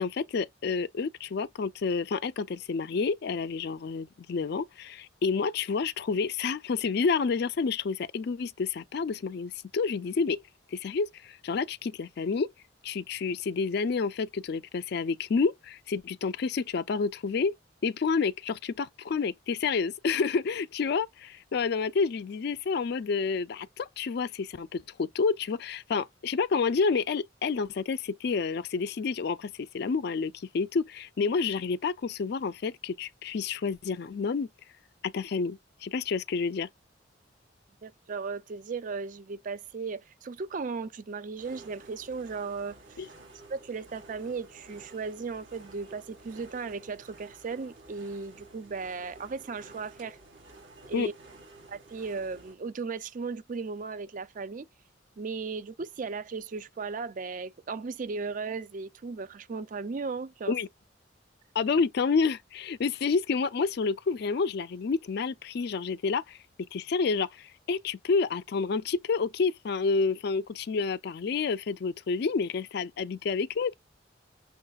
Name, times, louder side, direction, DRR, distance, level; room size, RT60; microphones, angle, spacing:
voice 1, 0.0-10.4 10.7-12.5 12.8-17.6 17.8-34.5 35.0-36.7 43.0-43.1 50.9-51.1 60.5-60.7 61.5-66.4 66.7-73.7, left 5 dB, 60° left, 0.4 m, -29 dB
voice 2, 37.8-42.8 43.5-50.2 50.9-51.1 51.7-54.7 55.2-60.5, right 4 dB, 45° right, 0.4 m, -36 dB
sound 1, 41.4-52.6, right 2 dB, 85° right, 2.3 m, -52 dB
6.2 x 2.4 x 2.4 m
head